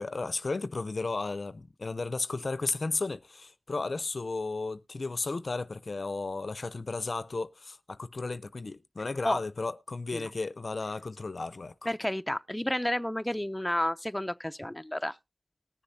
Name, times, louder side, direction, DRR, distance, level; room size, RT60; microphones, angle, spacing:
voice 1, 0.0-11.9, left 3 dB, 80° left, 0.5 m, -34 dB
voice 2, 11.9-15.2, left 1 dB, 15° left, 0.6 m, -31 dB
19.5 x 6.9 x 2.7 m
wide cardioid pair, 40°, 0 cm